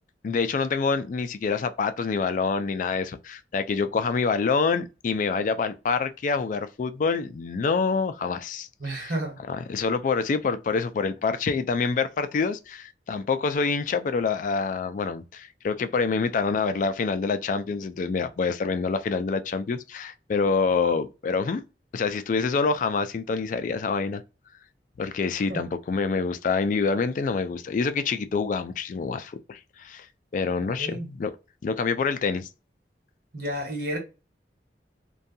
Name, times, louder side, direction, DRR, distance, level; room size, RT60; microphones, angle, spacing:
voice 1, 0.2-8.7 9.0-9.1 9.5-21.6 21.9-24.2 25.0-30.1 30.3-31.3 31.6-32.5, left 4 dB, 45° left, 0.3 m, -26 dB
voice 2, 8.8-9.4 25.5-25.6 30.8-31.1 33.3-34.0, right 1 dB, 60° right, 1.1 m, -31 dB
2.6 x 2.3 x 2.6 m
head